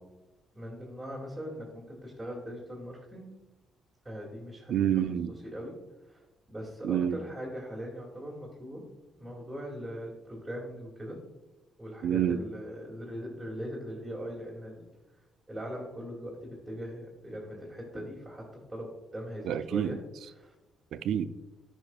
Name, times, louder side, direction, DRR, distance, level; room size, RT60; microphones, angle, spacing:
voice 1, 0.5-3.4 4.0-4.7 5.4-5.8 6.0-8.9 9.2-11.2 11.8-14.8 15.5-20.0 20.3-20.5, equal, 10° right, -6 dB, 2.0 m, -40 dB
voice 2, 4.7-5.3 6.8-7.2 12.0-12.4 19.5-20.0 20.9-21.3, right 10 dB, 75° right, 13 dB, 0.3 m, -27 dB
10.0 x 5.0 x 2.3 m, 1.1 s
supercardioid pair, 60°, 0 cm